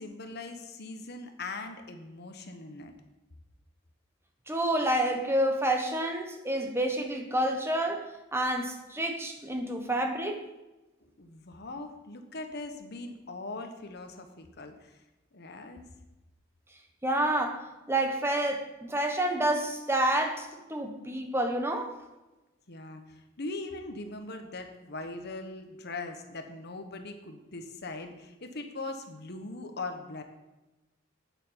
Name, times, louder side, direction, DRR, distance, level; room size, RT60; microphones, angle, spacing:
voice 1, 0.0-2.9 11.2-15.0 15.3-15.8 22.7-30.2, left 2 dB, 55° left, 6 dB, 1.1 m, -40 dB
voice 2, 4.5-10.4 17.0-17.6 17.9-21.9, right 1 dB, 10° right, 4 dB, 1.1 m, -29 dB
9.1 x 7.4 x 5.6 m, 1.1 s
head